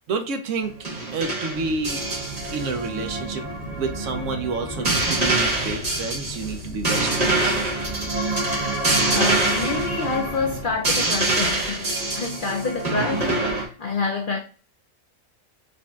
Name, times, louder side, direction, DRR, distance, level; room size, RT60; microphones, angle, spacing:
voice 1, 0.1-0.8 1.1-2.0 2.5-7.6, right 4 dB, 65° right, 0.9 m, -29 dB
sound 1, 0.6-13.7, right 2 dB, 30° right, 1.0 m, -25 dB
sound 2, 1.5-10.8, left 2 dB, 60° left, 1.0 m, -38 dB
voice 2, 9.1-14.4, left 4 dB, 85° left, 0.4 m, -27 dB
5.1 x 2.5 x 2.3 m
omnidirectional pair, 1.5 m